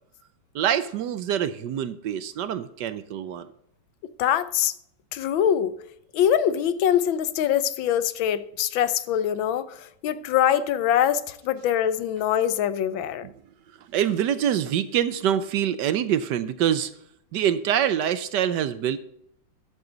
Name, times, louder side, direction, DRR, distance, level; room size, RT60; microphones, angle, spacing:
voice 1, 0.5-3.5 13.2-13.3 13.9-16.9 17.3-19.0, right 9 dB, 70° right, 1.2 m, -25 dB
voice 2, 4.2-4.7 5.1-5.7 6.1-13.3, left 10 dB, 85° left, 1.5 m, -23 dB
12.0 x 8.2 x 3.9 m
omnidirectional pair, 2.1 m